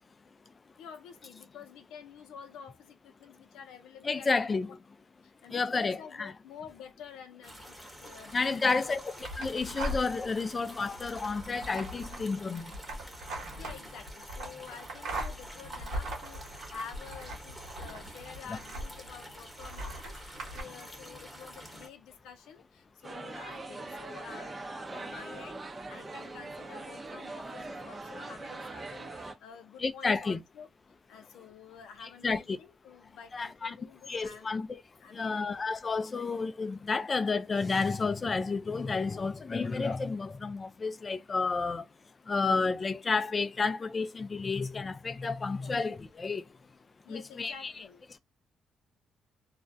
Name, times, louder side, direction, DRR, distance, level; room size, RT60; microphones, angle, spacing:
voice 1, 0.8-4.8 5.2-9.0 13.5-30.7 31.1-34.6 35.0-35.6 45.6-45.7 47.0-48.0, left 7 dB, 90° left, 0.5 m, -49 dB
voice 2, 4.0-4.7 5.5-6.3 8.3-9.0 9.4-12.8 29.8-30.4 32.0-32.6 33.3-33.8 34.1-34.8 35.1-41.9 42.3-46.4 47.1-47.7, left 4 dB, 30° left, 0.3 m, -31 dB
sound 1, 7.4-21.9, equal, 5° left, 0.9 m, -48 dB
sound 2, 9.2-10.3 10.7-19.1 19.6-20.6, right 1 dB, 85° right, 1.0 m, -40 dB
sound 3, 23.0-29.3, right 2 dB, 25° right, 0.5 m, -42 dB
2.3 x 2.1 x 2.5 m
cardioid pair, 90°, 0 cm